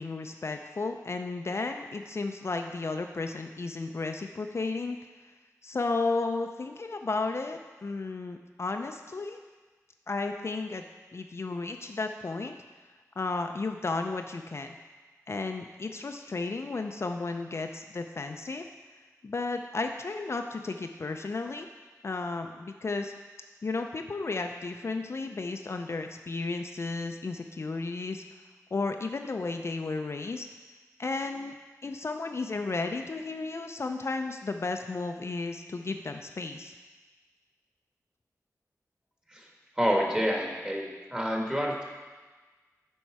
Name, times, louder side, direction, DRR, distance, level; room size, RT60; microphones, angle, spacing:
voice 1, 0.0-5.0 5.6-9.4 10.1-10.8 11.1-12.6 13.2-14.8 15.3-18.7 19.2-21.7 22.0-23.1 23.6-28.2 28.7-30.5 31.0-31.5 31.8-36.7, left 3 dB, 45° left, 5 dB, 0.4 m, -33 dB
voice 2, 39.8-41.8, equal, 15° right, -1 dB, 1.3 m, -28 dB
7.2 x 5.4 x 4.6 m, 1.3 s
wide cardioid pair, 80°, 6 cm